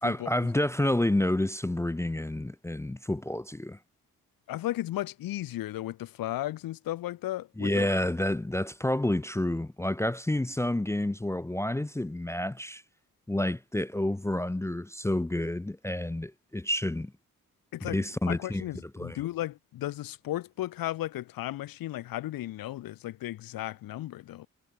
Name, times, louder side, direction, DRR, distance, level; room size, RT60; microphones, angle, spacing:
voice 1, 0.0-3.8 7.6-12.8 13.3-17.1 17.8-18.6 18.9-19.2, left 1 dB, 10° left, 0.5 m, -29 dB
voice 2, 4.5-8.0 17.7-24.5, left 15 dB, 85° left, 1.7 m, -35 dB
supercardioid pair, 45°, 34 cm